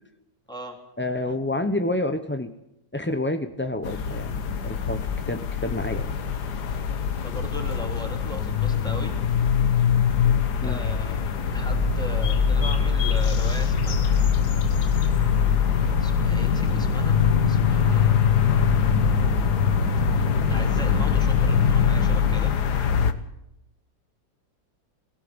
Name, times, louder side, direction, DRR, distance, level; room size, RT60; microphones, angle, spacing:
voice 1, 1.0-2.5 2.9-6.1 10.6-10.8, left 1 dB, 20° left, 8 dB, 0.3 m, -29 dB
sound 1, 3.8-23.1, left 8 dB, 65° left, 1.7 m, -23 dB
voice 2, 7.2-9.1 10.6-11.2 11.5-14.7 16.0-18.5 20.5-22.5, equal, ahead, 2 dB, 3.4 m, -38 dB
sound 2, 11.5-22.4, right 1 dB, 75° right, 3.4 m, -29 dB
20.5 x 16.5 x 8.0 m, 0.85 s
omnidirectional pair, 1.9 m